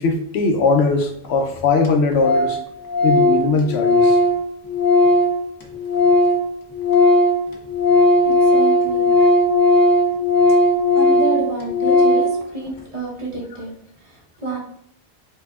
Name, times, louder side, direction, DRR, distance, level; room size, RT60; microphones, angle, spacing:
voice 1, 0.0-2.6 3.0-4.2, left 4 dB, 80° left, 4 dB, 0.9 m, -19 dB
Organ, 1.2-1.3 1.5-1.6 1.8-1.9 2.2-2.6 2.9-6.5 6.7-12.4, left 1 dB, 35° left, 0.3 m, -16 dB
voice 2, 8.2-9.1 10.9-13.7 14.0-14.6, right 2 dB, 30° right, -4 dB, 0.9 m, -29 dB
4.5 x 2.9 x 2.3 m, 0.73 s
omnidirectional pair, 1.1 m